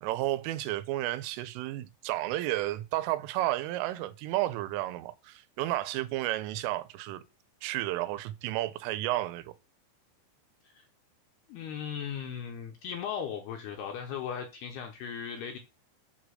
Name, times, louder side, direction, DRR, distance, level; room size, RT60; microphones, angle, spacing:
voice 1, 0.0-7.2 7.6-9.5, right 15 dB, 85° right, 3.2 m, -32 dB
voice 2, 11.5-15.6, left 7 dB, 75° left, 2.5 m, -37 dB
8.0 x 6.1 x 6.4 m
omnidirectional pair, 5.8 m